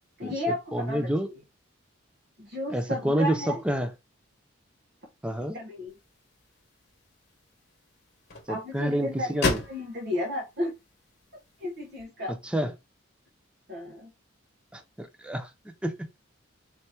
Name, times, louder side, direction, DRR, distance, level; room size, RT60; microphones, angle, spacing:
voice 1, 0.2-1.4 2.4-3.6 5.5-5.9 8.5-10.7 11.6-12.4 13.7-14.1, left 1 dB, 55° right, 1.1 m, -33 dB
voice 2, 0.7-1.3 2.7-3.9 5.2-5.6 8.5-9.6 12.3-12.7 14.7-15.5 15.8-15.9, right 1 dB, 5° right, 0.4 m, -28 dB
sound 1, 5.9-12.0, left 3 dB, 50° left, 1.1 m, -36 dB
4.3 x 2.9 x 3.2 m
head